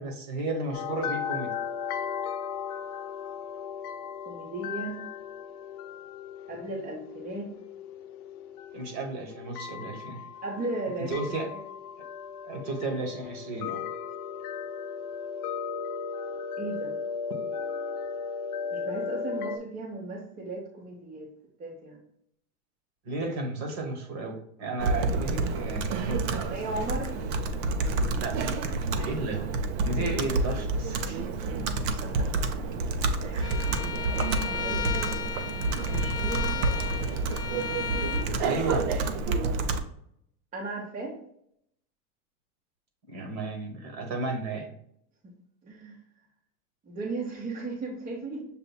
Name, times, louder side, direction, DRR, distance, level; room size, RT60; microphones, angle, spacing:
voice 1, 0.0-1.5 8.7-10.2 11.0-11.5 12.5-13.8 23.0-26.5 28.1-28.6 29.0-31.2 33.3-33.5 38.4-38.9 43.1-44.7, right 2 dB, 40° right, 4 dB, 1.1 m, -33 dB
sound 1, 0.7-19.6, left 6 dB, 75° left, 0.7 m, -36 dB
voice 2, 4.3-5.0 6.5-7.5 10.4-11.1 11.5-11.6 16.6-16.9 18.7-21.3 21.6-22.0 26.5-27.1 31.4-31.5 31.8-32.3 32.8-32.9 33.2-33.6 34.3-35.2 35.8-36.6 40.5-41.2 45.2-45.3 45.6-46.0 46.8-48.5, right 2 dB, 20° right, -2 dB, 0.7 m, -36 dB
Computer keyboard, 24.8-39.8, right 3 dB, 55° right, 0.7 m, -29 dB
Bowed string instrument, 33.4-38.3, left 7 dB, 10° left, 0.4 m, -35 dB
7.0 x 2.5 x 2.2 m, 0.72 s
supercardioid pair, 140°, 44 cm